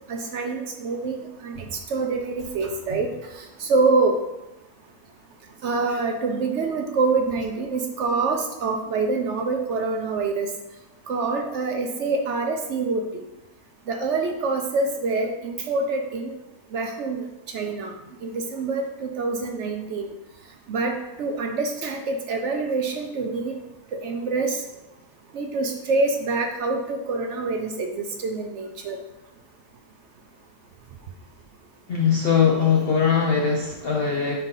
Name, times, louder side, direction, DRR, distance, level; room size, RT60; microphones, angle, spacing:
voice 1, 0.1-1.5 1.9-3.1 3.6-4.1 5.6-10.5 11.1-13.0 13.9-16.3 16.7-17.2 17.5-17.9 18.2-20.1 20.7-20.9 21.2-23.6 24.0-24.6 25.3-29.0, right 3 dB, 65° right, 4 dB, 0.7 m, -25 dB
voice 2, 31.9-34.4, left 6 dB, 80° left, 0 dB, 0.5 m, -21 dB
4.5 x 3.8 x 5.5 m, 0.97 s
omnidirectional pair, 1.7 m